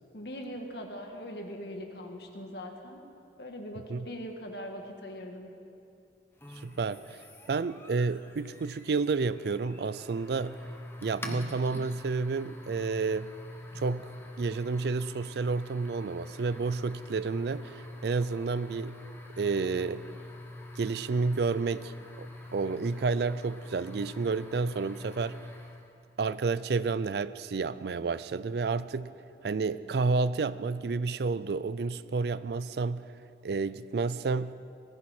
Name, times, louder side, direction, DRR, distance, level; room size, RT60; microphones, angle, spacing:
voice 1, 0.1-3.0 3.4-5.5, equal, 65° left, 3 dB, 1.8 m, -41 dB
sound 1, 6.4-26.0, left 1 dB, 15° left, 0.9 m, -45 dB
voice 2, 6.6-7.2 7.5-10.6 11.0-13.3 13.8-14.1 14.4-19.0 19.4-20.0 20.8-22.3 22.5-25.4 26.2-29.1 29.4-33.1 33.4-34.5, right 4 dB, 65° right, 16 dB, 0.4 m, -30 dB
19.5 x 14.5 x 4.4 m, 2.5 s
head